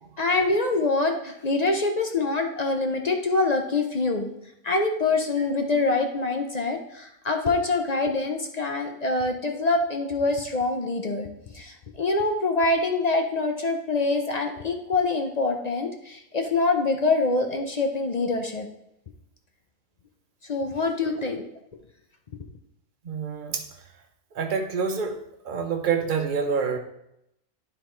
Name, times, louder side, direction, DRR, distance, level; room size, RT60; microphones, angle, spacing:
voice 1, 0.2-4.4 4.6-11.3 11.5-18.7 20.4-21.5, left 3 dB, 50° left, 4 dB, 0.5 m, -25 dB
voice 2, 23.0-23.6 24.3-25.2 25.4-26.8, right 5 dB, 40° right, 4 dB, 0.9 m, -27 dB
9.3 x 4.0 x 4.4 m, 0.79 s
omnidirectional pair, 1.5 m